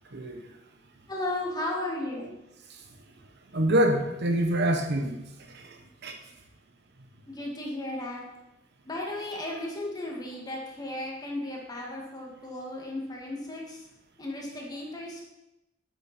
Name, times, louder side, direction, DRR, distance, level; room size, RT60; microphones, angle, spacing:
voice 1, 1.1-2.3 7.3-8.2 8.9-13.8 14.2-15.3, left 1 dB, 20° left, -2 dB, 2.2 m, -35 dB
voice 2, 3.5-5.2 6.0-6.2, right 1 dB, 60° right, 4 dB, 1.2 m, -25 dB
9.8 x 8.3 x 4.4 m, 0.91 s
head